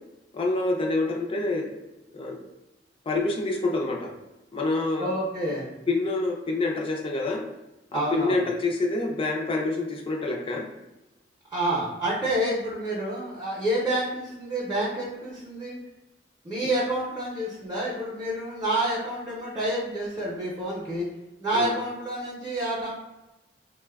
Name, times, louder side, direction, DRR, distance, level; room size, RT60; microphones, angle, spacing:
voice 1, 0.3-1.8 2.1-2.4 3.1-4.2 4.5-5.1 5.9-7.5 7.9-10.7 21.5-21.8, left 2 dB, 30° left, 1 dB, 0.4 m, -27 dB
voice 2, 5.0-5.7 7.9-8.4 11.5-15.7 16.4-21.1 21.4-22.9, right 1 dB, 20° right, -8 dB, 0.6 m, -28 dB
4.0 x 2.2 x 2.2 m, 0.99 s
head